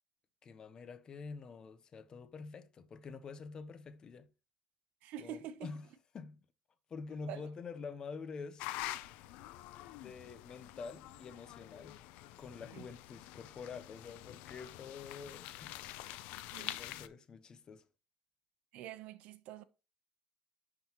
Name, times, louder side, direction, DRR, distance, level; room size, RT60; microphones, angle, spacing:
voice 1, 0.4-4.3 5.2-5.9 6.1-6.4 6.9-8.7 9.9-12.0 12.4-15.9 16.5-17.8, left 5 dB, 35° left, 0.7 m, -47 dB
voice 2, 5.0-5.7 7.3-7.4 12.7-12.9 16.5-16.8 18.7-19.6, right 10 dB, 70° right, 0.7 m, -46 dB
sound 1, 8.6-17.1, left 15 dB, 80° left, 0.5 m, -46 dB
10.5 x 3.9 x 3.0 m
cardioid pair, 130°, 2 cm